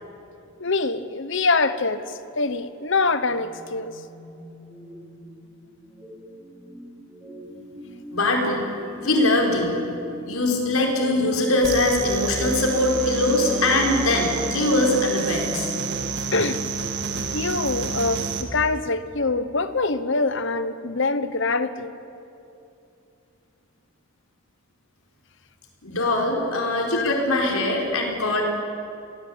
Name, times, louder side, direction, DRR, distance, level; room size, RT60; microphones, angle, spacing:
voice 1, 0.6-4.0 16.3-16.6 17.3-21.9 27.0-27.1, left 3 dB, 55° left, 12 dB, 1.1 m, -24 dB
sound 1, 2.9-15.1, equal, 5° right, 4.3 m, -40 dB
voice 2, 8.1-8.7 9.0-9.8 10.3-15.7 25.8-28.4, left 2 dB, 70° left, 0 dB, 4.7 m, -22 dB
sound 2, 11.6-18.4, right 4 dB, 50° right, 1.9 m, -29 dB
26.0 x 18.5 x 8.7 m, 2.7 s
head